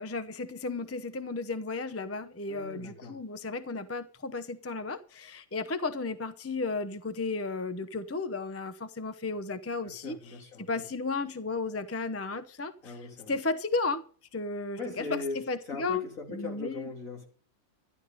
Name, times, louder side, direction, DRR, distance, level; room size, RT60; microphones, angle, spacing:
voice 1, 0.0-12.9 13.3-14.0 14.3-16.0 16.3-16.9, left 3 dB, 15° left, 0.6 m, -34 dB
voice 2, 2.5-3.2 9.8-10.8 12.8-13.4 14.8-17.3, left 3 dB, 70° left, 3.4 m, -40 dB
12.0 x 11.0 x 5.1 m
omnidirectional pair, 1.5 m